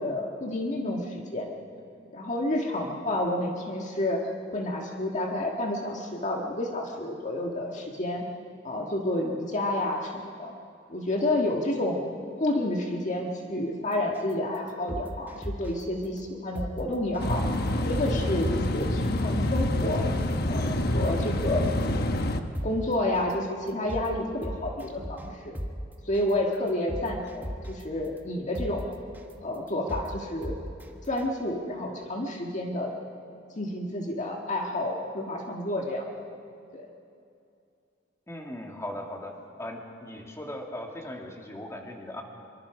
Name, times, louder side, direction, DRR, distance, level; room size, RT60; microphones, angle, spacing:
voice 1, 0.0-1.5 2.1-4.2 4.5-8.2 8.6-10.5 10.9-12.0 12.4-17.4 17.8-20.1 20.4-21.6 22.6-25.6 26.0-28.9 29.4-30.6 31.1-32.9 33.6-36.2 36.7-36.9, left 1 dB, 40° left, 0 dB, 1.7 m, -30 dB
sound 1, 14.1-14.3 14.7-15.8 16.2-16.3 16.6-16.7 17.1-17.3 17.7-18.1 18.4-18.9 19.2-19.3 19.6-19.7 20.1-20.3 20.7-21.8 22.2-22.3 22.6-22.7 23.1-23.3 23.7-24.1 24.4-25.3 25.6-25.7 26.1-26.3 26.7-27.8 28.2-28.3 28.5-28.7 29.1-29.3 29.7-30.1 30.4-30.9 31.2-31.3, equal, 10° right, 1.3 m, -35 dB
sound 2, 17.2-22.4, left 1 dB, 55° left, 1.1 m, -27 dB
voice 2, 38.3-42.2, left 1 dB, 15° left, 1 dB, 2.2 m, -38 dB
25.0 x 23.5 x 4.9 m, 2.5 s
head